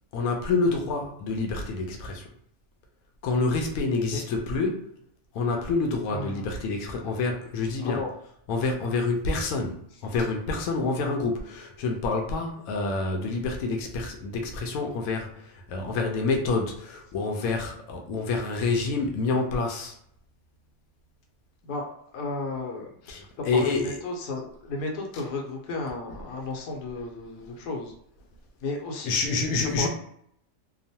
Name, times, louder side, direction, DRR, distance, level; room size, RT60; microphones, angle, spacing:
voice 1, 0.1-2.3 3.2-4.9 5.3-8.0 8.5-20.0 23.1-24.0 25.1-25.2 29.1-29.9, left 3 dB, 70° left, 2 dB, 1.0 m, -28 dB
voice 2, 6.1-6.5 7.8-8.1 21.6-21.9 22.1-27.9 28.6-29.3 29.6-29.9, left 3 dB, 90° left, 1 dB, 1.3 m, -34 dB
2.9 x 2.0 x 2.7 m, 0.68 s
omnidirectional pair, 1.6 m